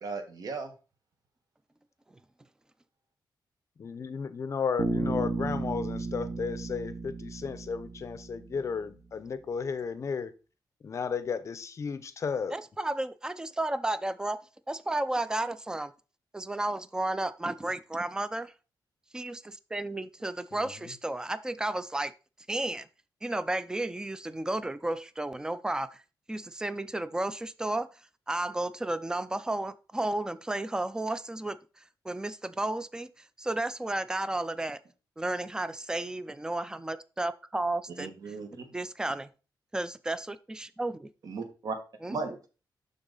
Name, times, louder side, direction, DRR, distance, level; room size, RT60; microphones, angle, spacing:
voice 1, 0.0-0.7 38.0-38.6 41.2-41.8 42.1-42.4, right 4 dB, 55° right, 6 dB, 1.5 m, -36 dB
voice 2, 3.8-10.3 10.8-12.6 20.5-20.9, left 5 dB, 40° left, 14 dB, 0.6 m, -34 dB
Bass guitar, 4.8-8.7, right 3 dB, 40° right, 0.9 m, -33 dB
voice 3, 12.5-14.4 14.7-15.9 16.3-18.5 19.1-22.1 22.5-22.9 23.2-25.9 26.3-27.9 28.3-31.6 32.0-33.1 33.4-34.8 35.2-38.1 38.7-39.3 39.7-41.1 42.0-42.2, right 2 dB, 10° right, 14 dB, 0.4 m, -32 dB
11.5 x 4.0 x 3.9 m, 0.33 s
wide cardioid pair, 170°, 8 cm